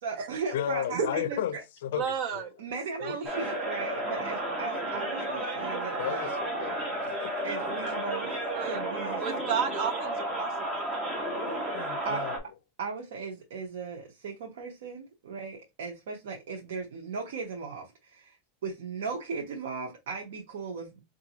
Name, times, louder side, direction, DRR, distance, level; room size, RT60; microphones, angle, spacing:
voice 1, 0.0-1.6 2.6-6.3 7.4-9.2 12.0-12.2 12.8-18.4 18.6-21.0, right 4 dB, 90° right, 0.8 m, -37 dB
voice 2, 0.5-2.1 2.3-2.5 3.0-3.2 6.0-7.5 7.9-8.1 11.4-12.4, left 10 dB, 85° left, 0.4 m, -34 dB
voice 3, 1.9-2.5 3.0-3.5 8.5-8.8 9.2-10.8, right 7 dB, 50° right, 0.8 m, -32 dB
sound 1, 3.3-12.4, right 1 dB, 15° right, 1.1 m, -32 dB
4.9 x 2.5 x 2.8 m
supercardioid pair, 150°, 0 cm